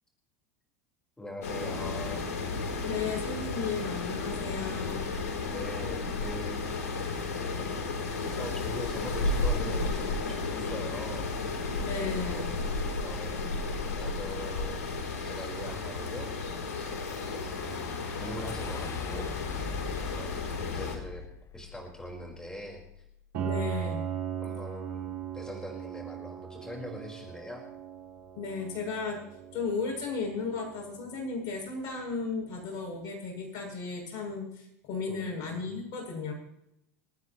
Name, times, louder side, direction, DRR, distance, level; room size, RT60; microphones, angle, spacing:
voice 1, 1.2-2.2 5.5-6.6 7.5-8.0 8.3-11.3 12.0-12.5 13.0-13.5 13.9-14.9 15.2-16.3 17.0-19.3 20.1-21.2 21.5-23.0 24.4-27.7 35.1-35.8, equal, 10° left, 0 dB, 4.5 m, -42 dB
sound 1, 1.4-21.0, left 3 dB, 85° left, 3.5 m, -33 dB
voice 2, 2.8-5.1 11.8-12.5 23.4-24.0 28.4-29.2 29.5-36.3, left 4 dB, 50° left, 1 dB, 7.6 m, -35 dB
sound 2, 16.9-23.2, left 5 dB, 35° left, 1.2 m, -43 dB
Piano, 23.3-32.9, right 9 dB, 65° right, 4.0 m, -39 dB
29.0 x 9.7 x 3.1 m, 0.78 s
hypercardioid pair, 95°, 8 cm